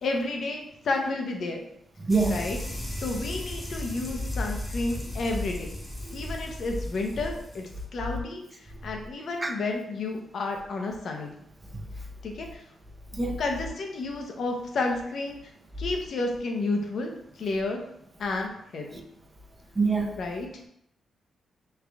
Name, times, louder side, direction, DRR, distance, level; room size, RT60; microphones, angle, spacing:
voice 1, 0.0-1.6 2.3-2.6 3.0-5.8 6.1-11.3 12.2-12.6 13.4-15.4 15.8-17.1 17.4-17.8 18.2-19.0 20.2-20.5, left 3 dB, 70° left, 0.6 m, -31 dB
voice 2, 2.0-2.4 6.1-6.2 9.4-9.5 11.7-11.9 13.1-13.4 18.9-19.0 19.8-20.1, right 3 dB, 30° right, 0.6 m, -26 dB
sound 1, 2.1-7.9, left 1 dB, 15° left, 0.8 m, -35 dB
3.3 x 2.5 x 3.4 m
cardioid pair, 65°, 0 cm